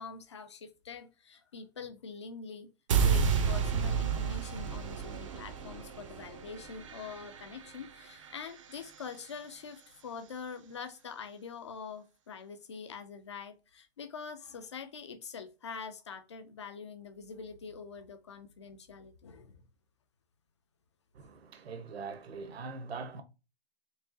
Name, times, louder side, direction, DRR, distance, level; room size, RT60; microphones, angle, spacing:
voice 1, 0.0-2.7 3.0-19.6, left 5 dB, 30° left, 0.4 m, -45 dB
sound 1, 2.9-9.1, right 6 dB, 30° right, 0.5 m, -32 dB
voice 2, 21.1-23.2, right 4 dB, 75° right, 1.1 m, -42 dB
4.6 x 2.8 x 2.6 m
hypercardioid pair, 170°, 31 cm